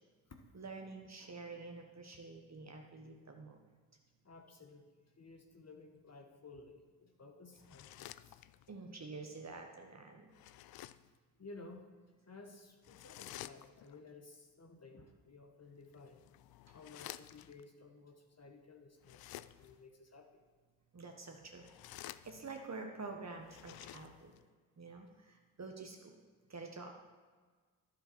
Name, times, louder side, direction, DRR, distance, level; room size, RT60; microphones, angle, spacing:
voice 1, 0.5-3.6 8.7-10.3 20.9-24.3 24.8-26.2 26.5-26.9, right 3 dB, 35° right, 2 dB, 1.3 m, -48 dB
voice 2, 4.2-4.9 5.2-8.4 11.4-11.9 12.2-16.2 16.7-20.3, left 3 dB, 30° left, 4 dB, 1.3 m, -55 dB
sound 1, 7.6-8.8 10.3-11.2 12.8-14.0 15.8-17.6 19.0-19.8 21.5-22.7 23.4-24.5, left 14 dB, 50° left, 0.5 m, -52 dB
10.5 x 7.2 x 4.5 m, 1.5 s
hypercardioid pair, 40°, 48 cm